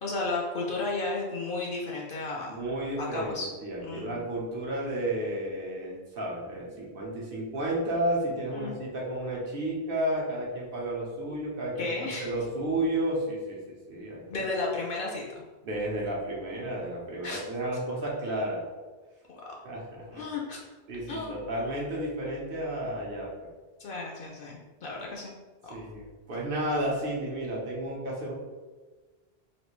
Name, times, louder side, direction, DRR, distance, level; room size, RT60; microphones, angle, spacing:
voice 1, 0.0-2.6 3.0-3.5 3.8-4.3 8.5-8.8 11.8-12.3 14.3-15.4 17.2-17.4 19.3-19.4 20.1-20.6 21.1-21.4 23.8-25.3 25.6-25.7, left 3 dB, 65° left, -2 dB, 0.7 m, -33 dB
voice 2, 2.5-13.6 13.9-14.5 15.6-18.7 19.6-20.2 20.9-23.3 25.7-28.3, right 1 dB, 60° right, -4 dB, 1.0 m, -32 dB
3.2 x 2.5 x 3.0 m, 1.3 s
omnidirectional pair, 1.1 m